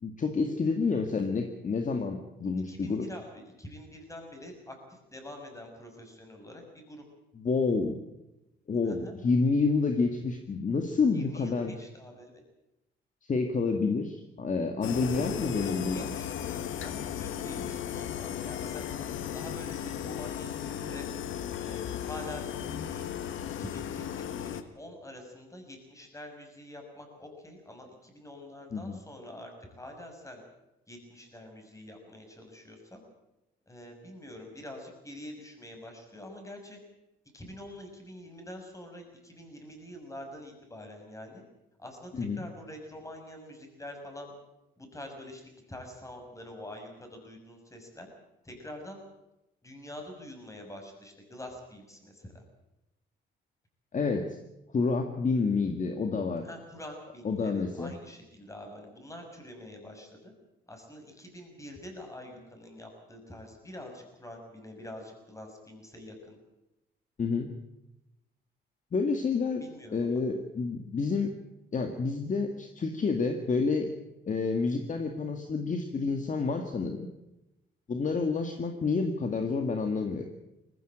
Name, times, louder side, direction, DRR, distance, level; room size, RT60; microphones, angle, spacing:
voice 1, 0.0-3.1 7.4-8.0 8.7-11.7 13.3-16.1 17.4-17.7 28.7-29.0 42.2-42.4 53.9-54.4 54.7-56.4 57.2-57.9 67.2-67.5 68.9-69.6 69.9-71.3 71.7-73.9 74.3-77.1 77.9-80.3, left 4 dB, 40° left, 5 dB, 2.0 m, -29 dB
voice 2, 2.7-7.0 8.8-9.1 11.1-12.4 15.1-18.9 19.3-21.1 21.6-30.4 30.9-33.0 33.7-36.8 37.3-41.4 41.8-44.3 44.8-48.1 48.4-49.0 49.6-52.4 56.4-60.3 60.7-66.4 69.6-70.2, left 1 dB, 15° left, 4 dB, 6.6 m, -46 dB
sound 1, 14.8-24.6, left 9 dB, 75° left, 1.4 m, -36 dB
20.0 x 15.5 x 8.9 m, 0.94 s
cardioid pair, 90°, 20 cm